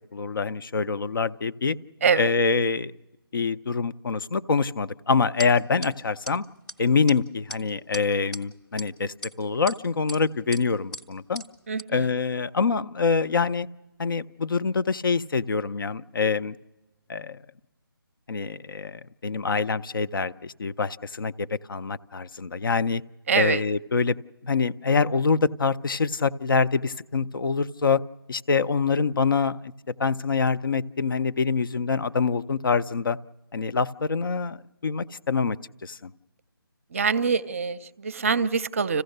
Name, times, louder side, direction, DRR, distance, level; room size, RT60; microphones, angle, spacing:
voice 1, 0.1-1.8 2.2-2.9 3.3-6.4 6.8-11.4 11.9-13.7 14.0-16.5 17.1-17.4 18.3-23.0 23.3-24.2 24.4-28.0 28.3-33.2 33.5-36.1, left 4 dB, 60° left, 13 dB, 0.6 m, -25 dB
sound 1, 5.4-5.5 5.8-5.9 6.3-6.4 6.7-6.8 7.1-7.2 7.5-7.6 7.9-8.4 8.8-8.9 9.2-9.8 10.1-10.2 10.5-10.6 10.9-11.0 11.4-11.5 11.8-11.9, right 1 dB, 5° left, 0.6 m, -37 dB
voice 2, 23.3-23.6 36.9-39.0, right 5 dB, 35° right, 16 dB, 0.6 m, -24 dB
26.5 x 15.5 x 6.6 m, 1.0 s
figure-of-eight pair, 165°, 13 cm